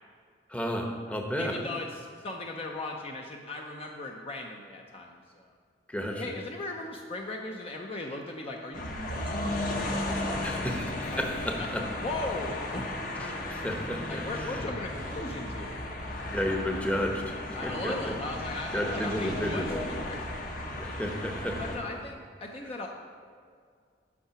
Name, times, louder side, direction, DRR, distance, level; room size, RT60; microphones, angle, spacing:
voice 1, 0.5-1.6 5.9-6.2 10.4-11.5 13.2-14.7 16.3-18.2 18.7-19.8 20.8-21.5, equal, 10° left, 2 dB, 0.8 m, -32 dB
voice 2, 1.4-5.5 6.1-10.7 11.1-11.2 11.6-11.7 12.0-12.9 14.1-15.8 17.5-20.2 21.6-22.9, left 2 dB, 35° left, 1 dB, 0.6 m, -38 dB
sound 1, 8.7-21.8, left 1 dB, 50° left, 1.1 m, -35 dB
8.5 x 5.7 x 5.7 m, 2.1 s
head